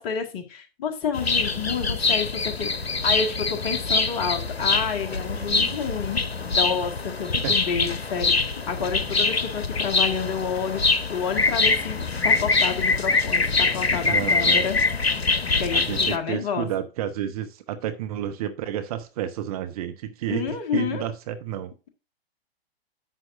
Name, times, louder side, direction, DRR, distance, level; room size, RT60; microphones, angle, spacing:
voice 1, 0.0-2.7 3.0-6.2 6.6-6.9 7.2-8.3 8.7-14.8 15.6-16.7 20.3-21.0, left 6 dB, 35° left, 1.7 m, -29 dB
sound 1, 1.1-16.2, left 3 dB, 75° left, 1.1 m, -24 dB
voice 2, 5.3-5.8 7.4-7.5 14.0-14.7 15.7-21.7, right 10 dB, 35° right, 0.8 m, -31 dB
11.0 x 7.5 x 2.5 m
figure-of-eight pair, 110°, 31 cm